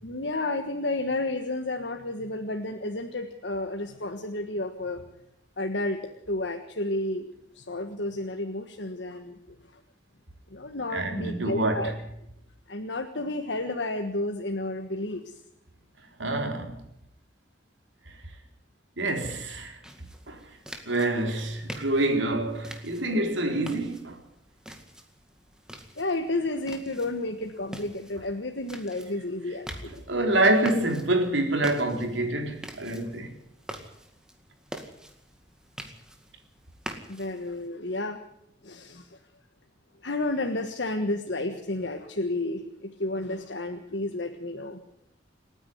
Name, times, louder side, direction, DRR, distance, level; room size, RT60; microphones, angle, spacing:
voice 1, 0.0-5.0 5.6-7.3 7.5-9.6 10.5-11.9 12.7-15.3 26.0-29.9 37.1-38.2 38.6-39.2 40.0-44.8, left 2 dB, 65° left, 1.5 m, -31 dB
voice 2, 10.9-11.9 16.2-16.8 19.0-19.8 20.3-20.4 20.9-24.2 30.1-33.4, right 1 dB, 85° right, 3.9 m, -26 dB
sound 1, 19.8-37.7, equal, 5° right, 2.1 m, -45 dB
27.5 x 9.9 x 9.6 m
head